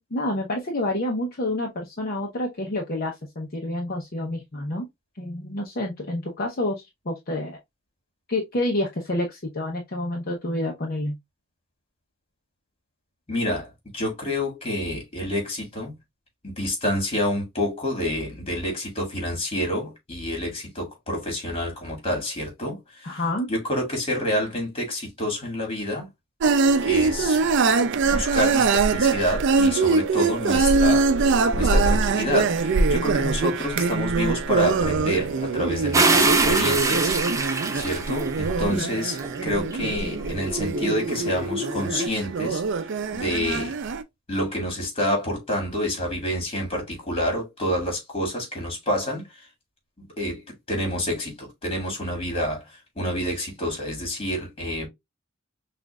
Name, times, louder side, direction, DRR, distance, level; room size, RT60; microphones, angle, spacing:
voice 1, 0.0-4.9 5.2-7.6 8.3-11.1 23.0-23.5 38.7-38.9, left 1 dB, 45° left, 0.8 m, -28 dB
voice 2, 13.3-15.9 16.4-23.2 23.5-26.1 26.8-27.4 28.0-37.2 37.7-43.8 44.3-49.5 50.0-54.9, equal, 30° left, 1.9 m, -28 dB
sound 1, 26.4-44.0, right 4 dB, 60° right, 0.5 m, -23 dB
sound 2, 35.9-38.5 39.2-42.1, right 3 dB, 15° right, 0.6 m, -25 dB
5.9 x 2.5 x 2.3 m
head